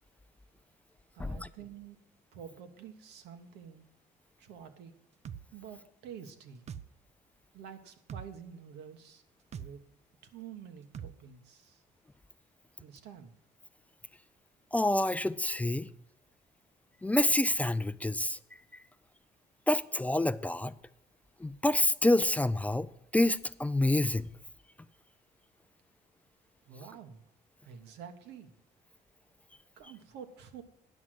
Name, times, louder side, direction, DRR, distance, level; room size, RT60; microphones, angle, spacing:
voice 1, 1.1-2.0 2.3-3.8 4.4-4.9 5.5-6.6 7.5-9.2 9.5-9.8 10.2-11.8 12.8-13.3 26.6-27.2 27.6-28.5 29.8-30.6, right 8 dB, 85° right, 1.4 m, -48 dB
sound 1, 5.3-5.4 6.7-6.9 8.1-8.3 9.5-9.7 10.9-11.1, right 8 dB, 40° right, 0.5 m, -41 dB
voice 2, 14.7-15.9 17.0-18.4 19.7-20.7 21.4-24.3, left 1 dB, 10° left, 0.3 m, -27 dB
9.7 x 6.2 x 7.8 m
cardioid pair, 110°, 17 cm